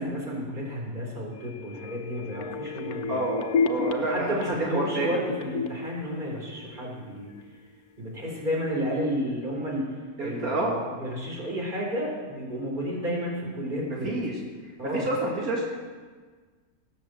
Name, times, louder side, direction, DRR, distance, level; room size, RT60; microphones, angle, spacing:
voice 1, 0.0-3.2 4.0-7.3 8.0-9.8 10.2-14.2 14.8-15.1, equal, 30° right, -2 dB, 3.7 m, -31 dB
sound 1, 1.4-7.0 7.4-7.5, left 4 dB, 80° left, 1.3 m, -32 dB
voice 2, 3.1-4.3 4.7-5.2 10.2-10.7 14.0-14.3 14.8-15.8, right 2 dB, 75° right, -3 dB, 2.6 m, -28 dB
18.5 x 7.1 x 7.6 m, 1.5 s
omnidirectional pair, 1.6 m